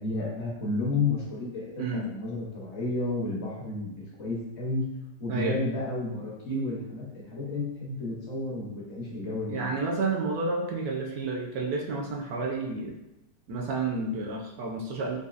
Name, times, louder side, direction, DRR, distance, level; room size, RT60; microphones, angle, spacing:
voice 1, 0.0-4.8 5.2-9.8, left 2 dB, 55° left, -4 dB, 0.8 m, -32 dB
voice 2, 9.5-12.9 13.5-15.2, right 3 dB, 70° right, 0 dB, 1.0 m, -30 dB
4.0 x 2.7 x 2.4 m, 0.92 s
omnidirectional pair, 1.9 m